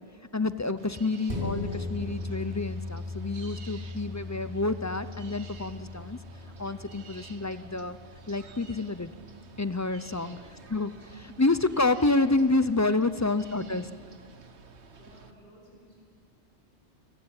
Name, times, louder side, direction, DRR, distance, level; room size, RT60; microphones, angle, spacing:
voice 1, 0.3-6.2 6.6-8.0 8.3-9.1 9.6-10.4 10.7-13.8, left 2 dB, 20° left, 12 dB, 0.4 m, -28 dB
sound 1, 0.8-15.3, right 4 dB, 65° right, 1.6 m, -51 dB
sound 2, 1.3-10.1 10.5-10.6, left 3 dB, 45° right, 5.4 m, -39 dB
voice 2, 10.2-10.6 13.2-13.8 14.8-16.0, equal, 50° left, -3 dB, 6.1 m, -53 dB
30.0 x 16.5 x 9.0 m, 2.3 s
omnidirectional pair, 1.2 m